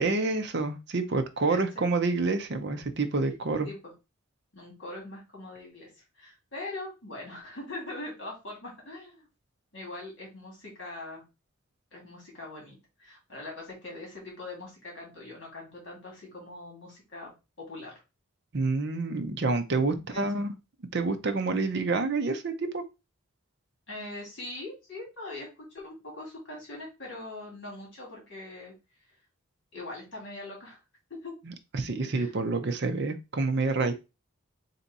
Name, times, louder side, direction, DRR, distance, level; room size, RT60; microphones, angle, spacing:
voice 1, 0.0-3.7 18.5-20.5 20.9-22.8 31.5-33.9, right 3 dB, 50° right, 7 dB, 0.6 m, -28 dB
voice 2, 1.5-1.9 3.6-3.8 4.5-5.9 6.2-9.3 9.7-11.2 11.9-17.3 17.6-17.9 19.9-20.4 23.9-28.7 29.7-30.8 31.1-31.4 32.2-32.3, left 2 dB, 55° left, -2 dB, 2.2 m, -42 dB
3.5 x 2.8 x 4.0 m, 0.26 s
head